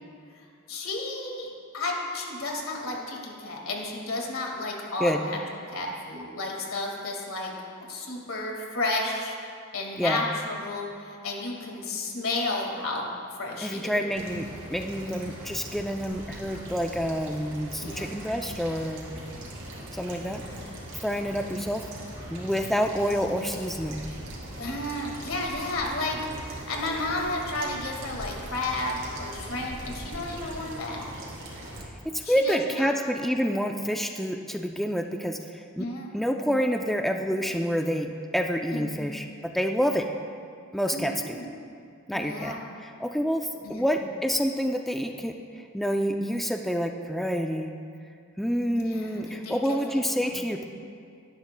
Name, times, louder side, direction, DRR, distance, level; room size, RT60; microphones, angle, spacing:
voice 1, 0.7-5.4 5.7-7.5 7.9-9.4 9.7-13.1 13.4-14.1 17.8-18.1 20.3-20.7 24.6-31.0 32.2-32.9 35.8-36.1 38.7-39.0 40.9-41.5 42.1-42.6 43.6-43.9 48.8-50.4, left 2 dB, 75° left, 0 dB, 1.9 m, -32 dB
voice 2, 13.6-19.1 19.9-20.4 21.0-21.8 22.3-24.0 32.1-35.4 35.8-35.9 36.1-39.2 39.5-40.1 40.7-41.4 42.1-42.5 42.8-45.3 45.7-47.7 48.4-50.6, equal, ahead, 3 dB, 0.4 m, -28 dB
sound 1, 14.1-31.8, right 1 dB, 65° right, 3.0 m, -40 dB
18.0 x 11.5 x 2.2 m, 2.3 s
head